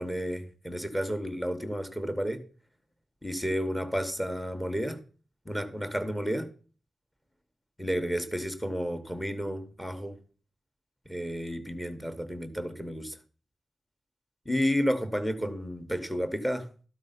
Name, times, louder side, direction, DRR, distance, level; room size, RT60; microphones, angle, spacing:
voice 1, 0.0-2.4 3.2-5.0 5.4-6.5 7.8-10.2 11.1-13.2 14.4-16.7, equal, 5° left, 0.9 m, -31 dB
12.5 x 4.8 x 5.7 m
wide cardioid pair, 165°, 0 cm